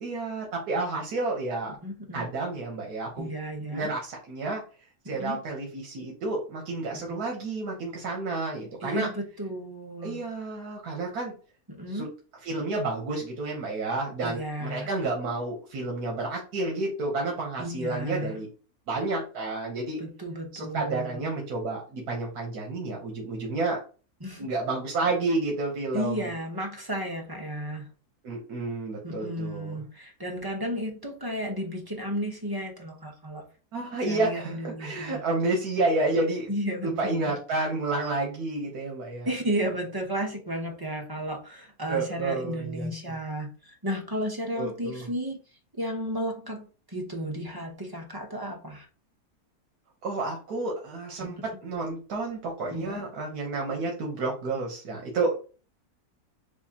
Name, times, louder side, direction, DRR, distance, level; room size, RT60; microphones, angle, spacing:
voice 1, 0.0-1.8 2.1-3.3 3.7-4.6 5.0-9.1 10.0-11.3 11.9-12.1 12.4-18.5 18.9-20.0 20.5-23.8 24.4-26.3 28.2-29.8 33.7-36.5 36.8-39.3 41.9-42.9 44.6-45.1 50.0-55.4, right 2 dB, 80° right, 1.5 m, -30 dB
voice 2, 1.8-2.3 3.2-3.9 5.2-5.4 7.1-7.2 8.8-10.2 11.7-12.1 14.2-14.9 17.6-18.4 20.0-21.3 24.2-24.5 25.9-27.9 29.0-33.4 34.0-35.2 36.5-37.3 39.3-45.4 45.7-48.9 51.2-51.3 52.7-53.1, equal, 30° right, 0.4 m, -33 dB
6.9 x 2.6 x 2.8 m
omnidirectional pair, 1.6 m